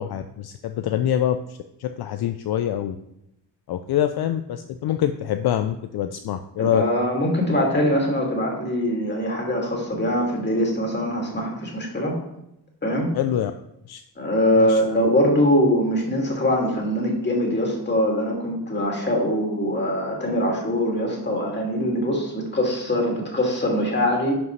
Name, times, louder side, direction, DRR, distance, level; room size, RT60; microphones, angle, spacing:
voice 1, 0.0-3.0 3.7-6.8 13.1-13.5 13.9-14.0 14.6-14.8, left 11 dB, 65° left, 8 dB, 0.5 m, -25 dB
voice 2, 6.6-12.1 12.8-13.1 14.2-24.3, equal, 25° left, -1 dB, 2.4 m, -22 dB
11.0 x 5.1 x 3.2 m, 0.83 s
cardioid pair, 85°, 41 cm